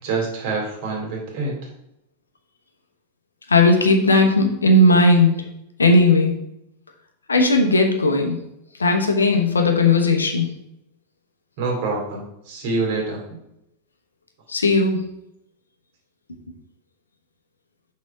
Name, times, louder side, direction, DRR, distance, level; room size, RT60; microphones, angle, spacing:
voice 1, 0.0-1.6 11.6-13.2, right 3 dB, 50° right, -1 dB, 2.5 m, -26 dB
voice 2, 3.5-5.4 5.8-6.4 7.3-8.4 8.8-10.5 14.5-15.0, left 2 dB, 75° left, 4 dB, 1.0 m, -16 dB
6.3 x 4.3 x 5.3 m, 0.81 s
figure-of-eight pair, 90°, 0 cm